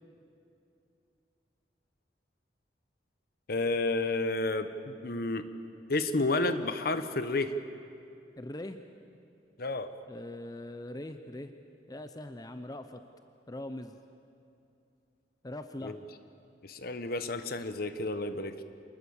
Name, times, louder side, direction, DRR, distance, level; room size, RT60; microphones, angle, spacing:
voice 1, 3.5-5.4 5.9-7.5 9.6-9.9 15.8-16.0 16.6-18.5, left 2 dB, 55° left, 10 dB, 1.2 m, -31 dB
voice 2, 8.4-8.8 10.1-11.5 11.9-13.0 13.5-14.0 15.4-16.0, left 1 dB, 20° left, 8 dB, 0.8 m, -41 dB
27.0 x 20.0 x 7.2 m, 2.7 s
head